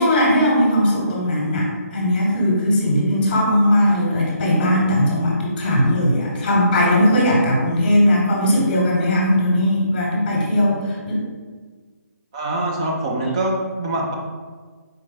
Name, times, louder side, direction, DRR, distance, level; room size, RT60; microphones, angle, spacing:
voice 1, 0.0-11.2, left 1 dB, 30° left, -3 dB, 1.0 m, -18 dB
voice 2, 12.3-14.1, right 1 dB, 20° right, -1 dB, 0.4 m, -24 dB
4.2 x 2.4 x 3.9 m, 1.5 s
hypercardioid pair, 170°, 9 cm